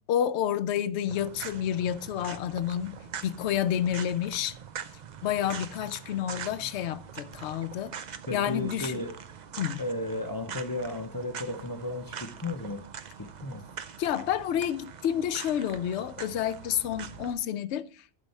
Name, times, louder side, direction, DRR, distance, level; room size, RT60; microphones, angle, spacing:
voice 1, 0.1-3.0 3.2-4.6 5.2-7.9 8.3-9.0 9.6-9.8 14.0-17.9, left 10 dB, 65° left, 0.8 m, -29 dB
sound 1, 1.1-17.3, right 7 dB, 55° right, 0.5 m, -43 dB
voice 2, 8.3-9.2 9.8-12.8 13.2-13.6, left 1 dB, 25° left, 0.5 m, -34 dB
11.5 x 5.5 x 4.2 m
omnidirectional pair, 1.4 m